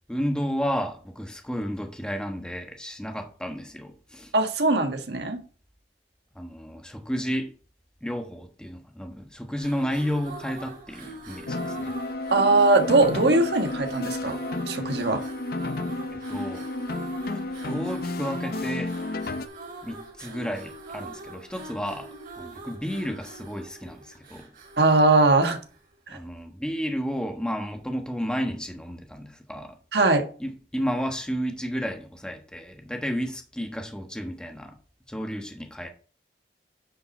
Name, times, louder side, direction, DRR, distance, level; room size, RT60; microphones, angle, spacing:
voice 1, 0.1-4.3 6.3-7.5 8.0-12.0 16.1-16.7 17.3-19.0 19.8-22.1 22.4-24.5 26.1-29.8 30.4-34.8 35.1-35.9, equal, 5° left, 1.3 m, -32 dB
voice 2, 4.3-5.4 12.3-14.4 14.7-15.2 24.8-25.6 29.9-30.2, right 2 dB, 70° right, 1.5 m, -20 dB
sound 1, 9.5-25.9, right 2 dB, 50° right, 4.0 m, -42 dB
sound 2, 11.5-19.5, left 2 dB, 60° left, 0.7 m, -32 dB
9.7 x 5.5 x 4.4 m
head